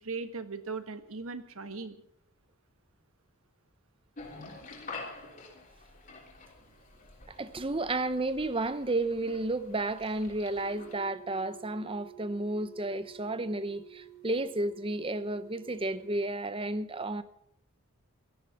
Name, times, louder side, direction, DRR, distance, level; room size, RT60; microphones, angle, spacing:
voice 1, 0.0-2.0, right 4 dB, 70° right, 1.4 m, -38 dB
sound 1, 4.2-10.9, left 3 dB, 40° left, 3.4 m, -48 dB
voice 2, 7.3-17.2, right 2 dB, 25° right, 0.8 m, -32 dB
sound 2, 10.6-16.2, right 13 dB, 45° right, 3.4 m, -51 dB
17.0 x 13.0 x 5.9 m
head